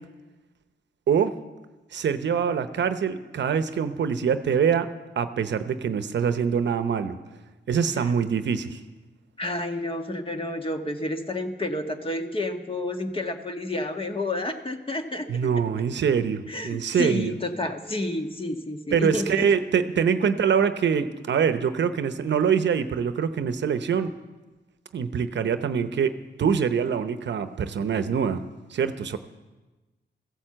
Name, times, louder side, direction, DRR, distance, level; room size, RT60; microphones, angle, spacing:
voice 1, 1.1-1.4 1.9-7.2 7.7-8.8 15.3-17.4 18.9-24.1 24.9-28.4 28.7-29.2, right 7 dB, 75° right, 11 dB, 0.8 m, -24 dB
voice 2, 9.4-15.3 16.5-19.4, left 1 dB, 30° left, 5 dB, 1.5 m, -30 dB
15.0 x 9.9 x 7.7 m, 1.2 s
cardioid pair, 80°, 19 cm